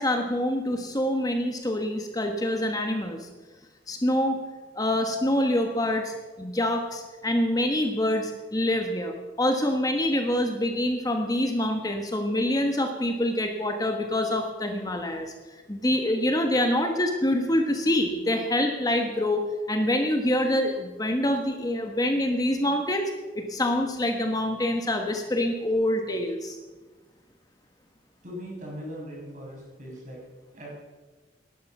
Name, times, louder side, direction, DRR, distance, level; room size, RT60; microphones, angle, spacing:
voice 1, 0.0-3.3 3.9-4.4 4.7-19.4 19.7-26.6, left 1 dB, 20° left, 4 dB, 1.3 m, -26 dB
voice 2, 28.2-30.2 30.5-30.8, equal, 45° right, -3 dB, 6.5 m, -39 dB
18.5 x 11.5 x 6.0 m, 1.3 s
head